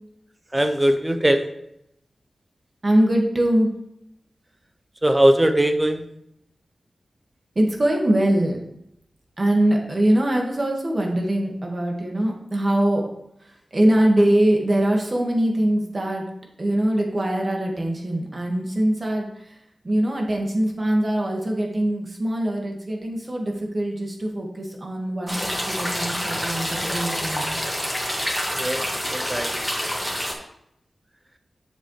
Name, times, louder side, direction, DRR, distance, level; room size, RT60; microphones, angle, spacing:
voice 1, 0.5-1.4 5.0-6.0 28.6-29.5, right 1 dB, 20° right, 7 dB, 0.8 m, -20 dB
voice 2, 2.8-3.7 7.6-8.6 9.4-13.0 13.7-16.2 16.6-19.3 19.8-27.6, right 1 dB, 45° right, 0 dB, 1.9 m, -22 dB
sound 1, 25.3-30.3, equal, 5° left, 2.0 m, -27 dB
7.4 x 7.0 x 3.3 m, 0.78 s
cardioid pair, 55°, 0 cm